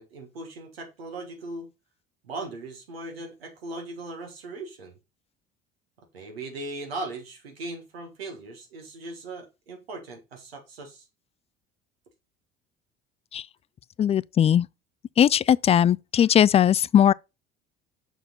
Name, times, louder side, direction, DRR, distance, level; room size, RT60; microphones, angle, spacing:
voice 1, 0.0-1.7 2.2-5.0 6.1-11.0, right 2 dB, 85° right, 1.7 m, -38 dB
voice 2, 14.0-14.7 15.2-17.1, left 9 dB, 20° left, 0.3 m, -19 dB
6.6 x 6.3 x 4.0 m
hypercardioid pair, 60°, 29 cm